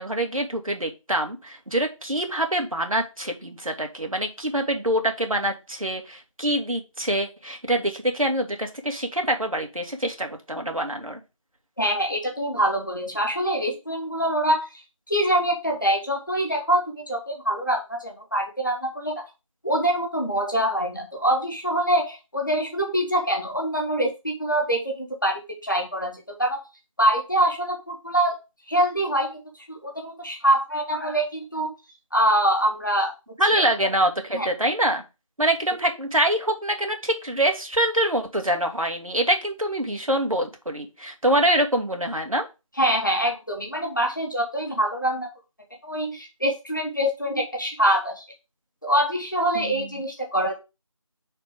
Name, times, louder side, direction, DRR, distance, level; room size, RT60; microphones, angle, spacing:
voice 1, 0.0-11.2 33.4-35.0 35.4-42.5 49.5-49.9, right 1 dB, 85° right, 4 dB, 1.8 m, -25 dB
voice 2, 11.8-14.8 15.1-19.3 19.6-26.6 27.0-28.4 28.7-29.4 29.7-31.7 32.1-33.1 33.5-33.6 34.3-34.5 42.8-45.3 45.8-48.2 48.8-50.5, right 1 dB, 35° left, 1 dB, 1.5 m, -24 dB
5.1 x 4.2 x 5.0 m, 0.27 s
figure-of-eight pair, 180°, 17 cm